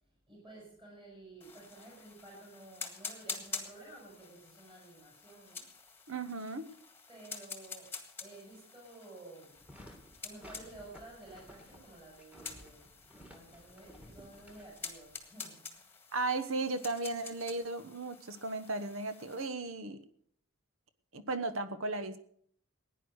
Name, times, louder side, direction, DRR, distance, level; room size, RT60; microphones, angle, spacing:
voice 1, 0.3-5.7 7.1-7.9 8.2-9.6 10.2-15.9, right 2 dB, 20° right, -4 dB, 6.4 m, -53 dB
sound 1, 1.4-19.5, left 5 dB, 10° left, 1.8 m, -48 dB
voice 2, 6.1-6.6 16.1-20.0 21.1-22.2, right 3 dB, 65° right, 11 dB, 1.1 m, -35 dB
sound 2, 9.5-15.3, equal, 5° right, 2.0 m, -55 dB
16.0 x 10.0 x 6.3 m, 0.64 s
head